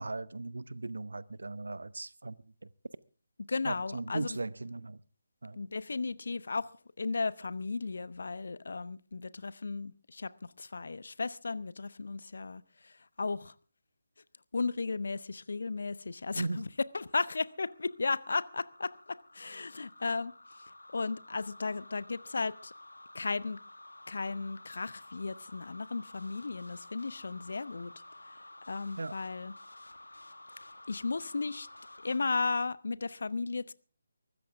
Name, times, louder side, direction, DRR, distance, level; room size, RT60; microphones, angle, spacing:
voice 1, 0.0-2.4 3.7-5.0 5.4-5.6 16.4-16.6 29.0-29.1, right 2 dB, 70° right, 0.8 m, -37 dB
voice 2, 3.5-4.4 5.6-6.7 7.0-13.5 14.5-16.7 16.9-20.3 20.9-22.7 23.1-23.6 24.1-27.9 28.7-29.5 30.9-31.7 32.0-33.7, left 4 dB, 60° left, 0.9 m, -35 dB
sound 1, 16.6-32.2, left 2 dB, 80° left, 1.8 m, -52 dB
23.5 x 13.5 x 3.5 m
figure-of-eight pair, 150°, 0 cm